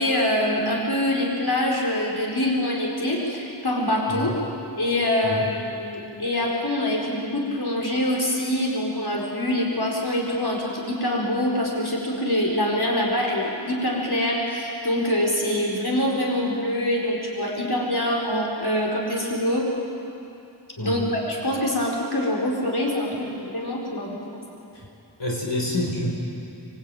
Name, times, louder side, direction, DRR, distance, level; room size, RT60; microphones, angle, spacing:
voice 1, 0.0-4.3 4.8-5.4 5.7-19.7 20.8-24.5, left 1 dB, 65° left, -2 dB, 4.9 m, -25 dB
voice 2, 20.8-21.1 25.2-26.1, left 1 dB, 85° left, -2 dB, 5.0 m, -27 dB
26.5 x 22.5 x 9.3 m, 2.7 s
wide cardioid pair, 45°, 41 cm